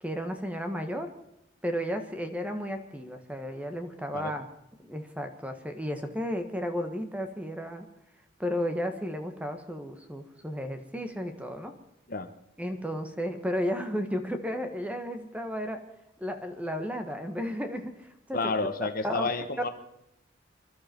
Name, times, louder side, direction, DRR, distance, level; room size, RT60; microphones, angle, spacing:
voice 1, 0.0-1.1 1.6-4.5 4.8-7.9 8.4-11.7 12.6-15.8 16.2-18.4 19.0-19.3, equal, 5° right, 7 dB, 1.5 m, -33 dB
voice 2, 18.3-19.7, left 3 dB, 45° left, 9 dB, 1.1 m, -30 dB
26.5 x 12.0 x 4.5 m, 0.84 s
head